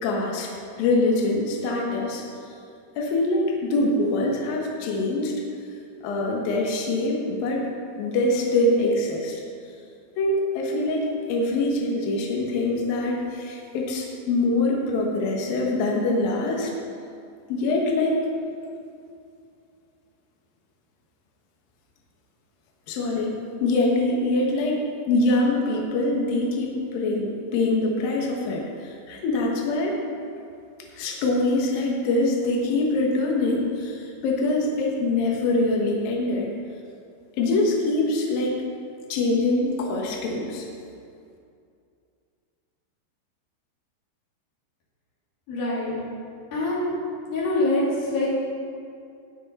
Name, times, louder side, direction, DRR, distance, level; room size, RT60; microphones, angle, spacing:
voice 1, 0.0-0.5 0.8-2.2 3.0-5.3 6.0-7.7 8.0-9.4 10.2-16.7 17.5-18.2 22.9-30.0 30.9-36.5 37.4-38.6 39.1-40.7, left 2 dB, 80° left, -1 dB, 2.1 m, -24 dB
voice 2, 45.5-45.9 46.5-46.9 47.3-48.4, left 1 dB, 50° left, -9 dB, 4.3 m, -24 dB
19.0 x 6.3 x 4.0 m, 2.4 s
omnidirectional pair, 5.9 m